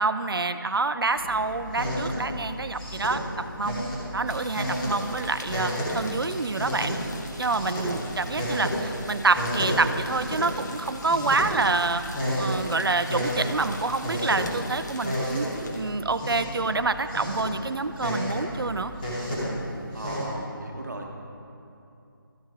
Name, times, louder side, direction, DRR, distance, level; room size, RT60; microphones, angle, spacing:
voice 1, 0.0-3.8 4.1-7.0 7.4-12.0 12.4-15.5 15.7-18.9, right 3 dB, 75° right, 11 dB, 0.5 m, -27 dB
sound 1, 1.1-20.2, equal, 20° left, 2.0 m, -32 dB
sound 2, 4.3-15.9, left 2 dB, 50° left, 1.2 m, -44 dB
voice 2, 19.9-21.1, right 2 dB, 50° right, 2 dB, 1.2 m, -37 dB
13.0 x 7.1 x 3.5 m, 2.7 s
figure-of-eight pair, 165°, 12 cm